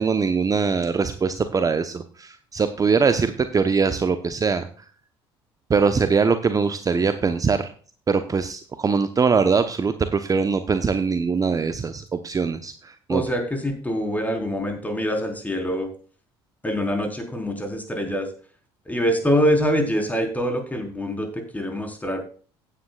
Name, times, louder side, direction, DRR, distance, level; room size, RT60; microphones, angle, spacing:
voice 1, 0.0-4.7 5.7-7.7 8.1-13.2, right 5 dB, 25° right, 10 dB, 0.9 m, -22 dB
voice 2, 13.1-15.9 16.6-18.3 18.9-22.2, equal, 10° left, 3 dB, 4.1 m, -24 dB
16.0 x 9.1 x 2.4 m, 0.42 s
hypercardioid pair, 60°, 13 cm